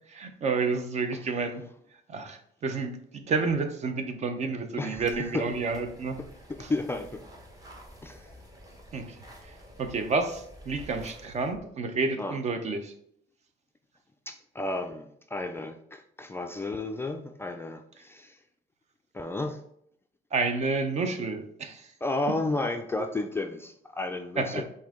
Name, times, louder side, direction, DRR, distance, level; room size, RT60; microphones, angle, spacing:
voice 1, 0.1-1.6 2.1-6.2 6.6-6.7 8.9-9.2 9.4-9.5 9.8-12.9 20.3-21.9 24.4-24.6, right 4 dB, 40° right, 7 dB, 0.7 m, -30 dB
voice 2, 4.8-5.4 6.7-7.2 8.0-8.3 12.2-12.4 14.3-18.4 19.1-19.6 22.0-24.6, left 2 dB, 15° left, 5 dB, 0.3 m, -32 dB
sound 1, 5.0-11.6, equal, 20° right, 1.0 m, -49 dB
5.5 x 2.7 x 3.6 m, 0.69 s
cardioid pair, 110°, 17 cm